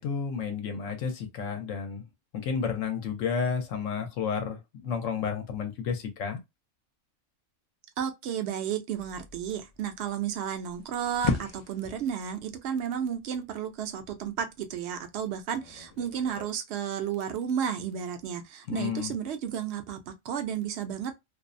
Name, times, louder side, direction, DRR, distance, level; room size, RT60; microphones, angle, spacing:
voice 1, 0.0-2.1 2.3-6.4 18.7-19.1, left 6 dB, 80° left, 1.0 m, -31 dB
voice 2, 8.0-21.2, right 8 dB, 65° right, 0.8 m, -32 dB
sound 1, 9.0-16.5, left 5 dB, 65° left, 0.3 m, -38 dB
2.6 x 2.0 x 2.4 m
omnidirectional pair, 1.3 m